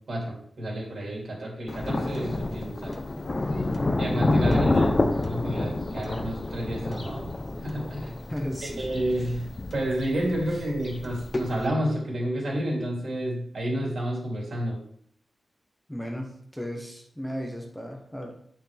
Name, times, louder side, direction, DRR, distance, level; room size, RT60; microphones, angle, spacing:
voice 1, 0.1-3.0 4.0-4.9 5.3-7.2 7.6-8.1 8.6-9.5 9.7-14.8, right 1 dB, 65° right, -2 dB, 3.0 m, -30 dB
Thunder, 1.7-11.7, left 2 dB, 35° left, 0.7 m, -28 dB
voice 2, 4.4-5.0 8.3-8.9 9.2-9.4 15.9-18.3, equal, 5° left, 1 dB, 1.0 m, -35 dB
9.2 x 5.9 x 3.4 m, 0.65 s
wide cardioid pair, 120°, 0 cm